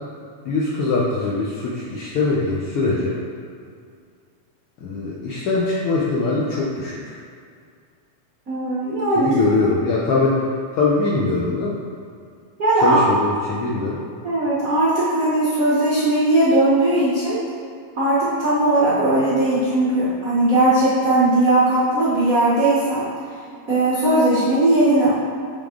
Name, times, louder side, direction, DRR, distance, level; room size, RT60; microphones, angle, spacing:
voice 1, 0.4-3.2 4.8-7.1 9.2-10.4 10.7-11.8 12.8-14.0, left 3 dB, 75° left, -5 dB, 1.3 m, -22 dB
voice 2, 8.5-9.3 12.6-13.0 14.2-17.4 18.0-23.1 23.7-25.1, right 2 dB, 65° right, -9 dB, 0.8 m, -18 dB
8.5 x 3.6 x 3.6 m, 2.2 s
omnidirectional pair, 3.3 m